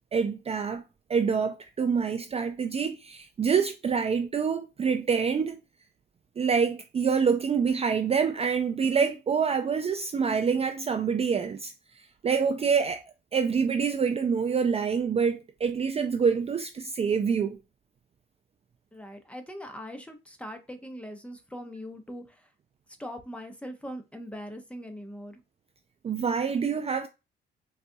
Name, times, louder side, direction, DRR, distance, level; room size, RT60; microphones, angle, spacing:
voice 1, 0.1-0.8 1.1-5.6 6.4-13.0 13.3-17.6 26.0-27.1, right 6 dB, 30° right, 0.4 m, -26 dB
voice 2, 18.9-22.5 23.0-25.4, equal, 5° left, 0.7 m, -41 dB
4.0 x 2.3 x 2.6 m
cardioid pair, 90°, 20 cm